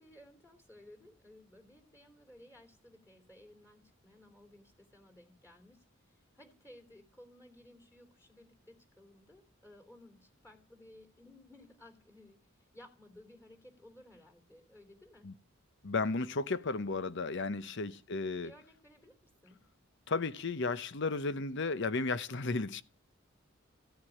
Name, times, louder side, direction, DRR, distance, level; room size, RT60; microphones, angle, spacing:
voice 1, 0.0-12.4 12.7-15.3 17.6-17.8 18.4-19.2 19.4-19.6, left 1 dB, 15° left, 3.1 m, -58 dB
voice 2, 15.8-18.5 20.1-22.8, left 3 dB, 60° left, 0.9 m, -34 dB
15.0 x 9.5 x 10.0 m
head